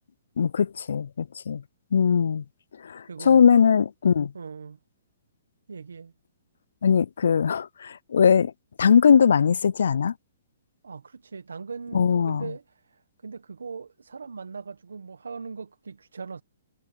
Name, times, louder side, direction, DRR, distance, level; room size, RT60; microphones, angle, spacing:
voice 1, 0.4-1.6 1.9-2.4 2.8-4.3 6.8-8.5 8.8-10.1 11.9-12.5, left 7 dB, 75° left, 0.3 m, -20 dB
voice 2, 3.1-3.6 4.3-4.8 5.7-6.1 10.8-16.4, right 5 dB, 85° right, 1.4 m, -39 dB
hypercardioid pair, 135°, 0 cm